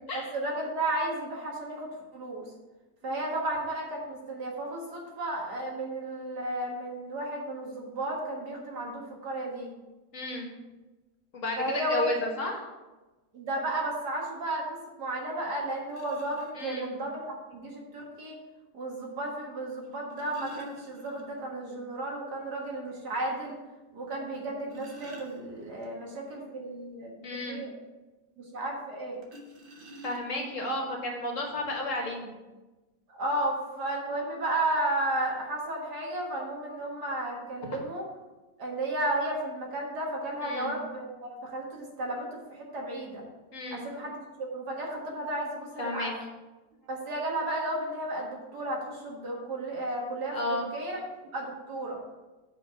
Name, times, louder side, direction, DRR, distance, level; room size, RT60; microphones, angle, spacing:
voice 1, 0.1-2.4 3.0-9.7 11.6-12.1 13.3-18.4 18.7-23.6 23.9-27.7 28.4-29.2 33.1-38.0 38.6-43.2 43.7-44.2 44.5-46.1 46.9-51.0 51.3-52.0, right 1 dB, 70° right, -1 dB, 2.2 m, -33 dB
voice 2, 10.1-10.5 11.3-12.6 16.5-16.9 27.2-27.6 30.0-32.4 40.4-40.7 43.5-43.9 45.8-46.1 50.3-50.7, left 2 dB, 50° left, 1 dB, 1.7 m, -33 dB
sound 1, 15.9-16.5 17.9-18.0 19.8-21.6 21.9-22.0 22.4-22.5 23.0-23.1 24.3-25.9 29.2-30.6 31.4-31.5 31.9-32.1, left 1 dB, 35° right, 1.1 m, -48 dB
8.1 x 5.1 x 5.6 m, 1.1 s
omnidirectional pair, 1.8 m